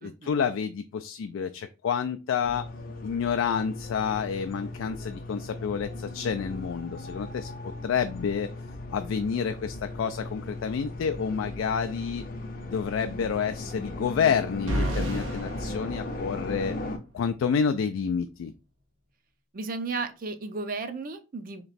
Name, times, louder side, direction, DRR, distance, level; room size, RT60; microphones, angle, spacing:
voice 1, 0.0-2.7 3.0-7.5 7.8-8.5 8.9-12.2 12.7-16.8 17.1-18.5, left 6 dB, 85° left, 7 dB, 0.3 m, -29 dB
sound 1, 2.4-17.0, left 2 dB, 45° left, 0.6 m, -38 dB
sound 2, 14.7-16.8, right 1 dB, 90° right, 1.1 m, -32 dB
voice 2, 19.5-21.6, right 3 dB, 45° right, 8 dB, 0.5 m, -34 dB
3.3 x 3.0 x 4.0 m, 0.30 s
head